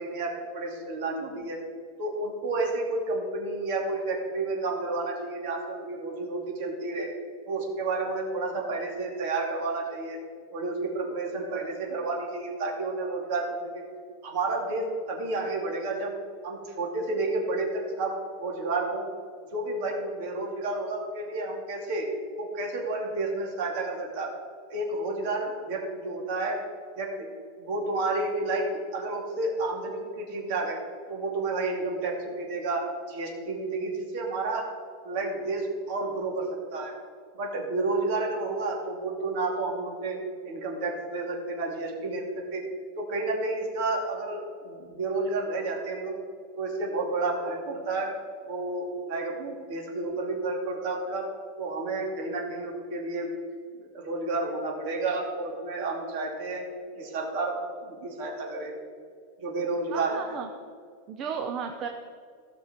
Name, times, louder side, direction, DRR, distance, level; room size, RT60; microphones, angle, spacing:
voice 1, 0.0-1.6 2.0-7.1 7.5-10.2 10.5-13.8 14.2-16.1 16.4-19.1 19.5-22.1 22.4-24.3 24.7-26.6 27.0-27.3 27.6-30.8 31.1-34.7 35.0-36.9 37.4-40.2 40.4-42.6 43.0-46.2 46.6-48.1 48.5-51.2 51.6-53.3 53.8-56.6 57.0-58.8 59.4-60.4, right 2 dB, 45° right, 0 dB, 2.5 m, -31 dB
voice 2, 59.9-60.5 61.1-62.0, right 6 dB, 25° right, 4 dB, 0.6 m, -34 dB
16.0 x 6.0 x 5.1 m, 2.2 s
supercardioid pair, 175°, 0 cm